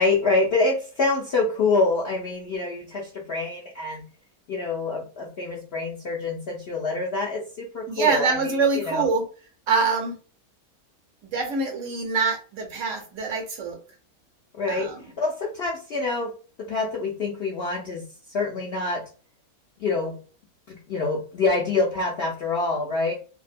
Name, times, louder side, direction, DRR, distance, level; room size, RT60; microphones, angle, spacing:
voice 1, 0.0-4.0 4.5-8.6 8.9-9.0 14.5-14.9 15.2-16.3 16.7-18.0 18.3-19.0 19.8-20.1 20.7-23.1, left 3 dB, 70° left, -2 dB, 0.6 m, -26 dB
voice 2, 7.9-9.2 9.7-10.1 11.3-13.8 14.7-15.0, right 4 dB, 65° right, 2 dB, 0.9 m, -24 dB
2.6 x 2.1 x 2.5 m, 0.37 s
omnidirectional pair, 1.6 m